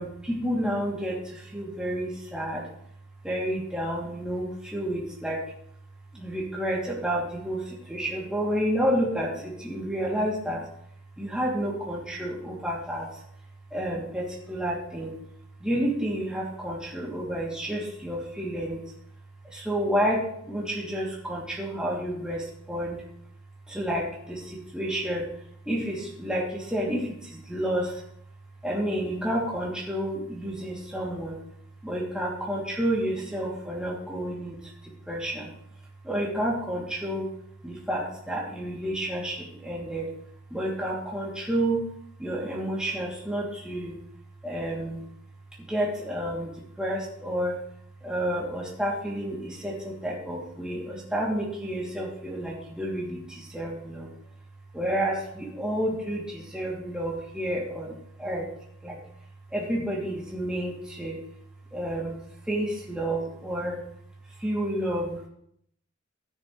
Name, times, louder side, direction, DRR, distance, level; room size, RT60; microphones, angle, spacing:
voice 1, 0.0-2.7 3.2-5.4 6.1-10.6 11.2-13.1 13.7-15.2 15.6-18.8 19.4-23.0 23.7-25.3 25.7-28.0 28.6-31.4 31.8-34.6 34.8-35.5 36.0-37.3 37.6-40.1 40.5-41.8 42.2-44.0 44.4-45.0 45.7-46.5 46.8-47.6 48.0-54.1 54.7-58.5 58.8-59.0 59.5-61.2 61.7-62.2 62.5-63.8 64.4-65.3, right 1 dB, 5° right, -5 dB, 2.9 m, -30 dB
13.0 x 10.5 x 3.3 m, 0.69 s
head